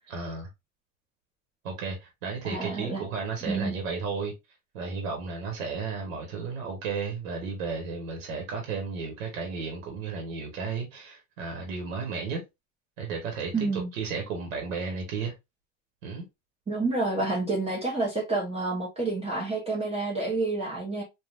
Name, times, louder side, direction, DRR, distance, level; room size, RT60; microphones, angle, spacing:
voice 1, 0.1-0.5 1.6-4.3 4.7-12.4 13.0-15.3 16.0-16.2, right 5 dB, 85° right, 1.2 m, -33 dB
voice 2, 2.4-3.0 3.4-3.8 13.5-13.9 16.7-21.0, right 3 dB, 15° right, 0.8 m, -29 dB
3.5 x 2.4 x 2.3 m
supercardioid pair, 115°, 38 cm